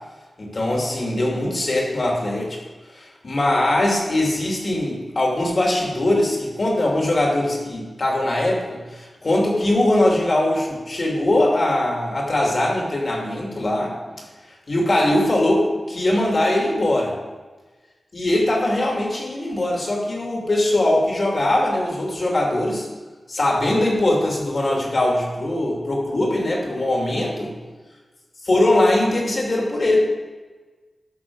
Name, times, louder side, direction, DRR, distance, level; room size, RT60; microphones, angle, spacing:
voice 1, 0.4-2.6 2.9-13.9 14.7-17.1 18.1-22.9 23.3-27.5 28.4-30.0, left 1 dB, 50° left, -2 dB, 2.8 m, -21 dB
12.5 x 6.5 x 4.9 m, 1.3 s
wide cardioid pair, 80°, 0 cm